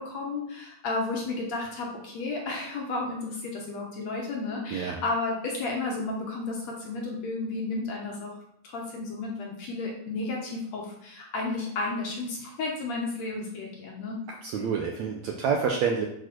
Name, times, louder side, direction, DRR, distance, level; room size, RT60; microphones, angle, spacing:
voice 1, 0.0-8.3 8.6-14.2, left 3 dB, 60° left, 0 dB, 2.1 m, -32 dB
voice 2, 14.3-16.1, right 6 dB, 75° right, 1 dB, 1.7 m, -28 dB
8.8 x 4.7 x 6.1 m, 0.75 s
omnidirectional pair, 4.1 m